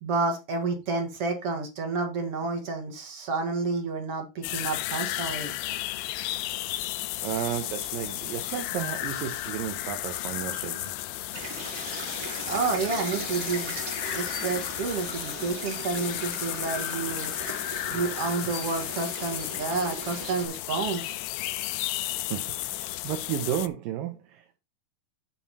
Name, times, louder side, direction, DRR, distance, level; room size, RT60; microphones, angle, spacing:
voice 1, 0.0-5.5 12.5-13.8 14.1-17.3 17.9-21.2, right 4 dB, 50° right, 2.0 m, -30 dB
sound 1, 4.4-23.7, left 16 dB, 80° left, 2.1 m, -33 dB
voice 2, 7.2-10.9 22.2-24.6, right 11 dB, 75° right, 2.3 m, -33 dB
sound 2, 11.3-20.5, right 2 dB, 20° right, 3.5 m, -38 dB
9.3 x 5.7 x 4.1 m
omnidirectional pair, 4.6 m